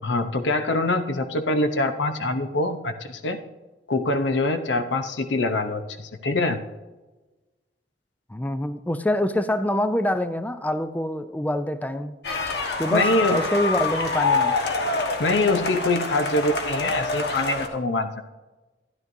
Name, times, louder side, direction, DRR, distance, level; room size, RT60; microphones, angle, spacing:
voice 1, 0.0-3.4 3.9-6.6 12.9-13.4 15.2-18.1, left 2 dB, 85° left, 8 dB, 0.7 m, -24 dB
voice 2, 8.3-12.2 12.8-14.6, left 1 dB, 10° left, 11 dB, 0.4 m, -25 dB
sound 1, 12.2-17.7, left 3 dB, 65° left, 1.3 m, -26 dB
13.0 x 11.0 x 2.6 m, 1.2 s
head